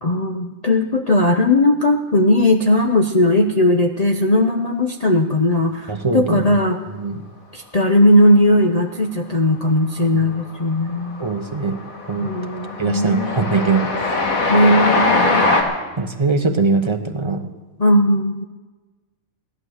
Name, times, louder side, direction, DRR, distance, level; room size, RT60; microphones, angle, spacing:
voice 1, 0.0-6.8 7.5-11.2 12.2-13.4 14.5-15.5 17.8-18.4, left 1 dB, 35° left, 3 dB, 0.7 m, -17 dB
voice 2, 5.9-6.6 7.0-7.2 10.1-10.2 11.2-11.8 12.1-12.3 12.8-13.9 16.0-17.4, right 4 dB, 25° right, 7 dB, 0.9 m, -21 dB
Train, 9.9-10.4 10.7-15.6, left 2 dB, 90° left, 2.0 m, -21 dB
16.0 x 11.5 x 6.5 m, 1.3 s
omnidirectional pair, 1.4 m